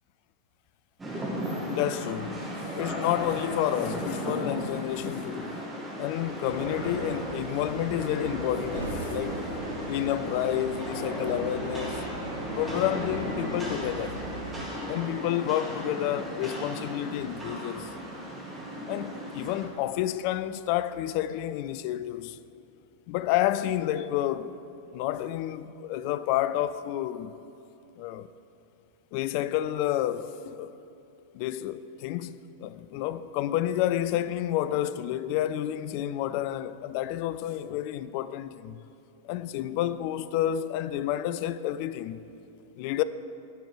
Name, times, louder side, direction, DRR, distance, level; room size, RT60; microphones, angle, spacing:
Rain, 1.0-19.7, equal, 15° right, 2.0 m, -35 dB
voice 1, 1.6-5.5 6.0-9.4 9.9-12.0 12.6-14.2 14.9-17.9 18.9-22.4 23.1-24.6 24.9-27.3 28.0-28.3 29.1-30.7 31.3-38.8 39.2-42.2 42.8-43.0, left 12 dB, 45° left, 0.3 m, -30 dB
sound 1, 6.4-14.7, right 3 dB, 75° right, 0.7 m, -40 dB
11.0 x 6.0 x 4.9 m
figure-of-eight pair, 90°, 0 cm